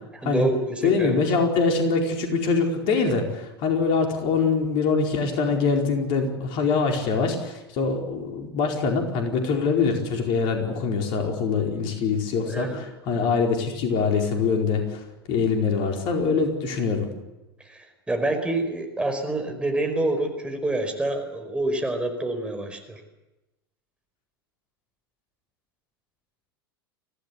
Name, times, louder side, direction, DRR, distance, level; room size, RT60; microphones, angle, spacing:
voice 1, 0.2-1.2 12.4-12.8 17.6-23.0, right 2 dB, 10° right, 4 dB, 4.9 m, -27 dB
voice 2, 0.8-17.1, left 4 dB, 45° left, 3 dB, 4.6 m, -24 dB
24.5 x 17.5 x 8.4 m, 1.0 s
figure-of-eight pair, 85°, 12 cm